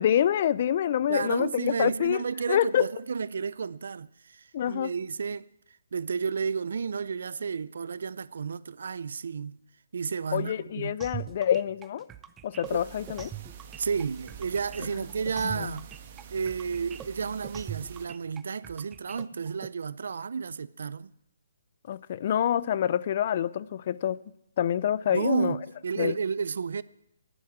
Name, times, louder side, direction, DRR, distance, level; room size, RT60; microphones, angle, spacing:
voice 1, 0.0-2.2 2.5-2.9 4.5-4.9 10.3-12.1 12.4-13.3 15.4-15.7 21.9-24.2 24.6-25.6 26.0-26.1, left 10 dB, 45° left, 0.5 m, -26 dB
voice 2, 1.1-5.5 5.9-9.6 9.9-11.0 12.7-12.8 13.8-15.9 16.3-21.1 25.1-26.8, right 5 dB, 70° right, 0.5 m, -32 dB
sound 1, 11.0-19.7, right 11 dB, 15° right, 0.5 m, -42 dB
sound 2, 12.6-18.1, right 7 dB, 40° right, 1.4 m, -47 dB
11.0 x 10.5 x 8.7 m
hypercardioid pair, 155°, 0 cm